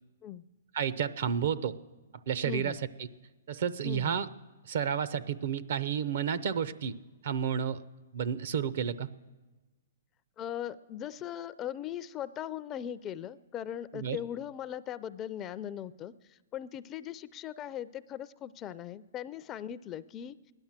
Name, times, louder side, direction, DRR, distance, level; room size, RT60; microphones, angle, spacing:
voice 1, 0.7-1.8 2.3-2.8 3.5-4.3 4.6-7.0 7.2-7.8 8.1-9.1 13.9-14.2, right 8 dB, 65° right, 17 dB, 0.7 m, -31 dB
voice 2, 2.4-2.8 3.8-4.2 10.4-20.4, left 10 dB, 25° left, 15 dB, 0.4 m, -39 dB
16.5 x 11.0 x 7.4 m, 1.2 s
hypercardioid pair, 135°, 0 cm